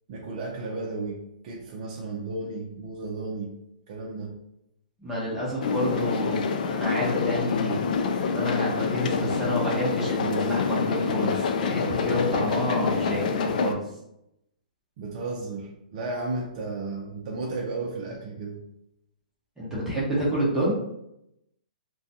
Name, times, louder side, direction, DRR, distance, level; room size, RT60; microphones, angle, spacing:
voice 1, 0.1-3.5 3.9-4.4 15.0-18.6, right 3 dB, 45° right, -2 dB, 0.5 m, -34 dB
voice 2, 5.0-7.8 8.3-13.8 19.6-20.7, equal, 10° right, -7 dB, 0.9 m, -28 dB
sound 1, 5.6-13.7, left 5 dB, 60° left, 0.3 m, -26 dB
2.3 x 2.2 x 2.7 m, 0.80 s
hypercardioid pair, 135°, 5 cm